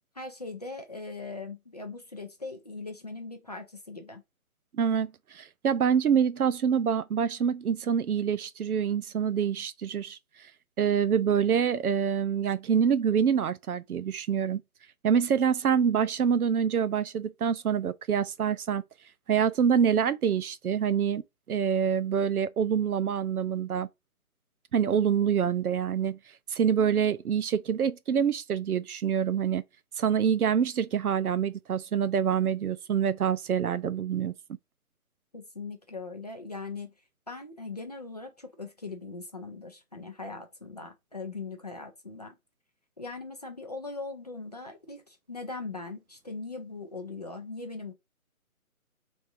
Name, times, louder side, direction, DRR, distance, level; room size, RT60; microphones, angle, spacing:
voice 1, 0.1-4.2 35.3-36.9 37.3-42.3 43.0-47.9, left 3 dB, 30° left, 0.5 m, -40 dB
voice 2, 4.7-10.2 10.8-14.6 15.0-18.8 19.3-21.2 21.5-23.9 24.7-26.2 26.5-29.6 30.0-34.3, right 7 dB, 85° right, 0.6 m, -26 dB
3.5 x 3.1 x 2.5 m
figure-of-eight pair, 155°, 43 cm